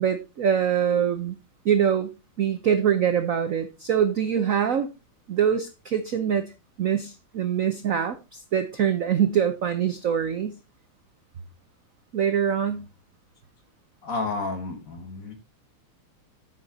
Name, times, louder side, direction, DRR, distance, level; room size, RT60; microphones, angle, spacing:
voice 1, 0.0-1.4 1.6-2.1 2.4-4.9 5.3-6.4 6.8-10.5 12.1-12.8, right 8 dB, 65° right, 9 dB, 0.8 m, -24 dB
voice 2, 14.0-15.3, left 3 dB, 45° left, 6 dB, 1.7 m, -31 dB
8.9 x 6.3 x 4.1 m, 0.27 s
omnidirectional pair, 2.3 m